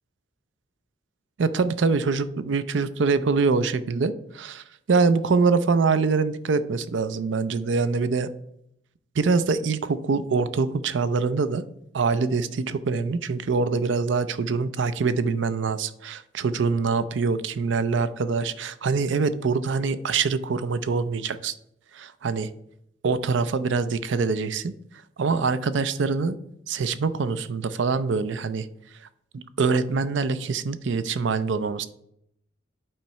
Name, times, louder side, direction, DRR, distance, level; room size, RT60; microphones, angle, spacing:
voice 1, 1.4-8.3 9.2-11.6 11.9-21.5 21.9-22.5 23.0-24.7 25.2-26.4 26.7-28.7 29.3-31.9, right 4 dB, 80° right, 13 dB, 0.5 m, -24 dB
8.7 x 3.1 x 5.6 m, 0.75 s
head